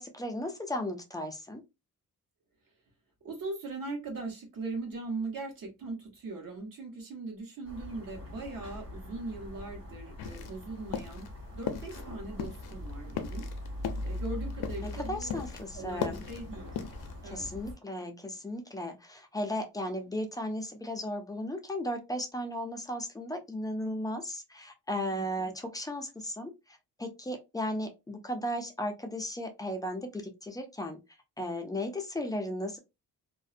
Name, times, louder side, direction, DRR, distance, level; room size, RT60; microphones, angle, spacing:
voice 1, 0.0-1.6 14.8-16.2 17.2-31.0 31.4-32.8, left 1 dB, 10° left, 4 dB, 0.3 m, -35 dB
voice 2, 3.2-13.5 14.0-15.4 15.7-16.8 17.2-17.5 25.1-25.5, right 3 dB, 60° right, 1 dB, 1.1 m, -40 dB
sound 1, 7.6-17.7, left 1 dB, 40° right, 1.3 m, -42 dB
sound 2, 10.2-10.6 10.9-11.3 11.6-12.1 12.4-15.6 15.9-17.2, left 8 dB, 85° left, 0.5 m, -37 dB
2.5 x 2.1 x 2.4 m, 0.24 s
wide cardioid pair, 140°, 37 cm